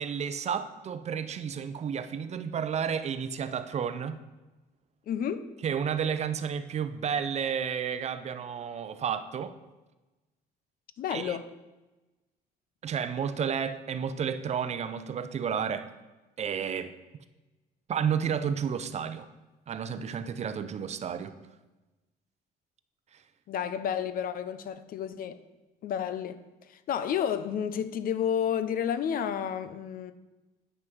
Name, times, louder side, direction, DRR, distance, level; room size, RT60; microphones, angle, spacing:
voice 1, 0.0-4.2 5.6-9.5 11.1-11.4 12.8-15.9 16.4-16.9 17.9-19.3 19.7-21.4, right 7 dB, 40° right, 0.6 m, -31 dB
voice 2, 5.1-5.5 11.0-11.5 23.5-25.4 25.8-26.4 26.7-30.1, left 8 dB, 60° left, 0.7 m, -31 dB
9.3 x 6.1 x 6.0 m
cardioid pair, 110°, 17 cm